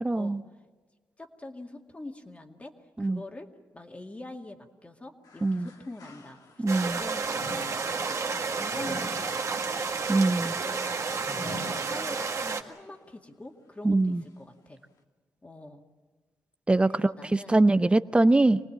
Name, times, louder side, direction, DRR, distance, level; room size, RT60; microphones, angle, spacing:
voice 1, 0.0-0.4 3.0-3.2 5.4-5.7 6.6-7.0 10.1-10.6 13.8-14.2 16.7-18.6, right 2 dB, 15° right, 0.6 m, -23 dB
voice 2, 1.2-2.7 3.0-3.5 3.7-10.1 10.5-14.8 15.4-15.8 16.8-17.6, left 2 dB, 20° left, 2.1 m, -45 dB
sound 1, 5.2-6.8 7.3-12.6 13.0-13.1 14.0-14.1, left 2 dB, 80° left, 2.5 m, -45 dB
sound 2, 6.7-12.6, right 4 dB, 55° right, 1.8 m, -31 dB
25.5 x 19.0 x 8.7 m
cardioid pair, 95°, 6 cm